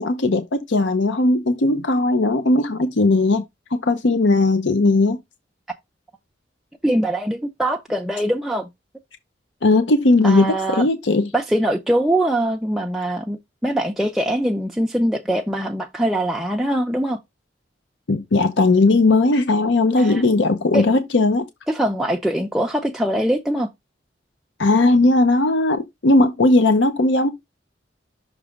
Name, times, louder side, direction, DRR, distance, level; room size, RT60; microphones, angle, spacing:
voice 1, 0.0-3.4 3.7-5.2 9.6-11.3 18.1-21.5 24.6-27.3, left 2 dB, 90° left, 0.7 m, -17 dB
voice 2, 6.8-8.7 10.2-10.8 11.3-17.2 20.0-20.2 20.7-20.9 21.7-23.7, right 1 dB, ahead, 0.5 m, -22 dB
6.1 x 3.2 x 5.0 m
head